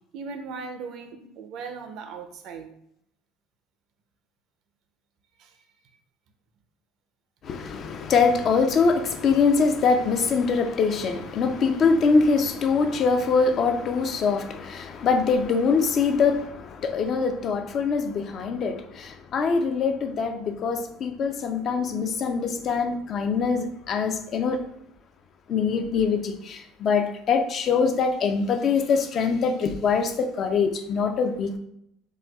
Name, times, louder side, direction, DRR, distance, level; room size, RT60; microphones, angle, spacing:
voice 1, 0.1-2.7 5.4-5.5, right 5 dB, 65° right, 0.4 m, -38 dB
voice 2, 7.4-24.6 25.5-31.6, left 5 dB, 45° left, 0.4 m, -23 dB
4.1 x 2.3 x 2.2 m
supercardioid pair, 95°, 0 cm